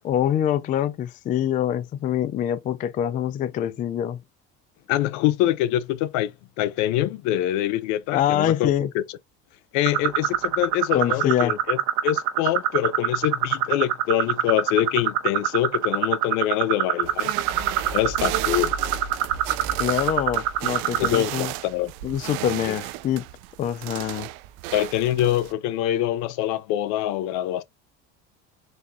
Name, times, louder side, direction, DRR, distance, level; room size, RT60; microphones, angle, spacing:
voice 1, 0.0-4.2 8.1-8.9 10.9-11.5 19.8-21.5 22.0-23.2 23.6-24.3, left 10 dB, 30° left, 0.3 m, -25 dB
voice 2, 4.9-9.0 9.7-17.3 17.9-18.8 21.0-21.9 24.7-27.6, left 13 dB, 70° left, 0.7 m, -25 dB
sound 1, 9.8-21.2, right 13 dB, 70° right, 0.9 m, -23 dB
sound 2, 17.0-25.5, right 18 dB, 85° right, 0.5 m, -34 dB
4.1 x 2.4 x 3.4 m
cardioid pair, 135°, 30 cm